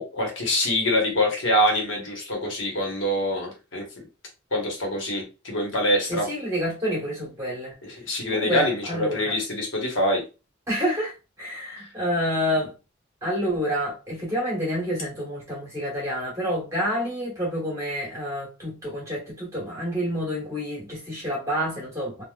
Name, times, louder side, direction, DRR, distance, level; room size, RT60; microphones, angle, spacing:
voice 1, 0.0-4.1 4.5-6.2 7.8-10.2, left 1 dB, 70° left, 1.2 m, -25 dB
voice 2, 6.1-7.7 8.3-9.3 10.7-12.7 13.2-22.2, equal, 15° right, 1.4 m, -28 dB
3.2 x 2.4 x 2.3 m
head